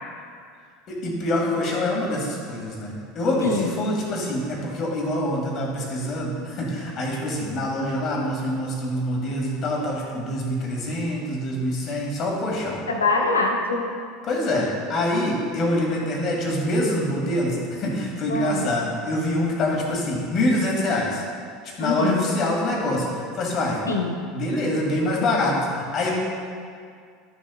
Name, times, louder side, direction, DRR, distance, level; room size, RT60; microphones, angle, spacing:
voice 1, 0.9-12.8 14.2-21.2 21.6-23.8 24.3-26.1, left 1 dB, 45° left, -2 dB, 2.1 m, -25 dB
voice 2, 12.9-13.9 18.3-18.7 21.8-22.3 23.9-24.2, left 3 dB, 85° left, 2 dB, 0.8 m, -24 dB
12.5 x 6.7 x 2.4 m, 2.2 s
figure-of-eight pair, 75°, 0 cm